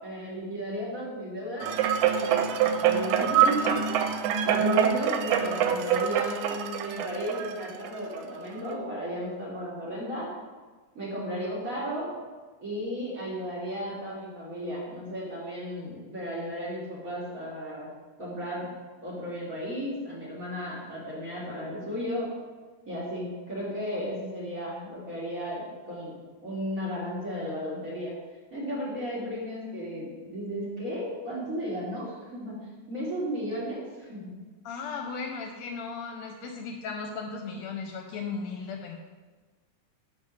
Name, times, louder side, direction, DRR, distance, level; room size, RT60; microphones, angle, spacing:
voice 1, 0.0-1.8 2.2-10.3 10.9-12.1 12.6-17.9 18.2-18.7 19.0-22.3 22.9-26.1 26.4-28.1 28.5-32.6 32.9-34.3, equal, 30° right, -6 dB, 2.2 m, -34 dB
sound 1, 1.6-8.2 8.7-8.8, right 8 dB, 85° right, 2.0 m, -25 dB
voice 2, 34.6-39.0, left 4 dB, 75° left, 3 dB, 1.8 m, -36 dB
10.0 x 4.0 x 6.3 m, 1.3 s
omnidirectional pair, 3.4 m